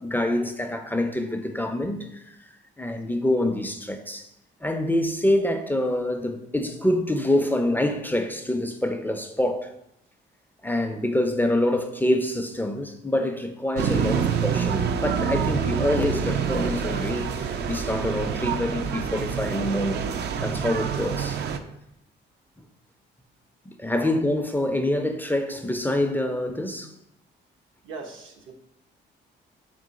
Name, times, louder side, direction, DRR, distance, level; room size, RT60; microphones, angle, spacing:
voice 1, 0.0-2.5 2.8-4.3 4.6-9.7 10.6-20.0 20.4-21.4 23.7-26.9, left 1 dB, 10° left, 0.4 m, -26 dB
sound 1, 13.8-21.6, right 7 dB, 60° right, 0.4 m, -27 dB
voice 2, 27.8-28.5, right 4 dB, 80° right, 0.8 m, -40 dB
3.8 x 3.0 x 3.9 m
cardioid pair, 90°, 20 cm